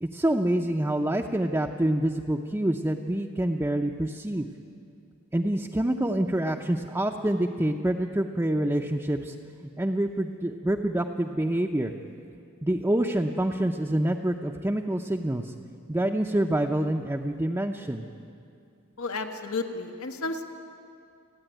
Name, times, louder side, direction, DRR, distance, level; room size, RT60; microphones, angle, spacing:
voice 1, 0.0-4.5 5.3-9.3 9.6-11.9 12.6-15.5 15.9-18.1, right 1 dB, 10° right, 0 dB, 0.6 m, -26 dB
voice 2, 19.0-20.5, left 3 dB, 90° left, 4 dB, 1.5 m, -32 dB
29.5 x 10.0 x 9.1 m, 2.5 s
head